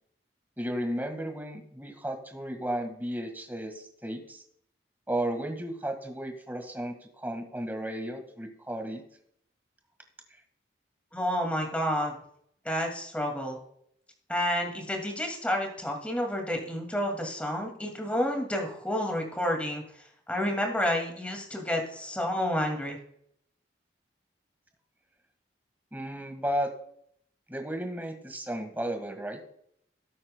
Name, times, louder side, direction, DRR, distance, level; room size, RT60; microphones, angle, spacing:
voice 1, 0.6-4.4 5.1-9.0 25.9-26.7 27.5-29.4, right 1 dB, 10° right, 5 dB, 1.6 m, -34 dB
voice 2, 11.1-12.2 12.6-13.6 14.3-19.8 20.3-23.0, equal, 5° left, 2 dB, 2.2 m, -30 dB
17.5 x 8.7 x 2.2 m, 0.68 s
head